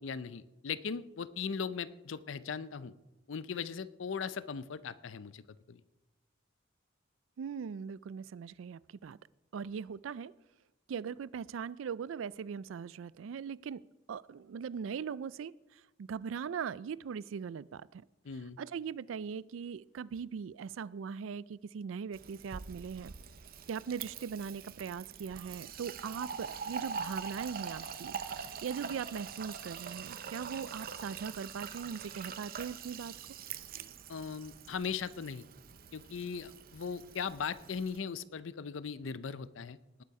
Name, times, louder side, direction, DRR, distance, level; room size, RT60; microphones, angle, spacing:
voice 1, 0.0-2.9 3.3-5.4 5.7-5.8 18.2-18.6 34.1-35.4 35.9-40.0, left 6 dB, 75° left, 15 dB, 0.5 m, -39 dB
voice 2, 7.4-9.2 9.5-10.3 10.9-13.8 14.1-15.5 16.0-18.0 18.6-23.1 23.7-28.2 28.6-33.1, right 6 dB, 90° right, 20 dB, 0.4 m, -40 dB
Fill (with liquid), 22.1-38.0, right 6 dB, 50° right, 0.6 m, -44 dB
19.0 x 6.8 x 4.8 m, 1.0 s
head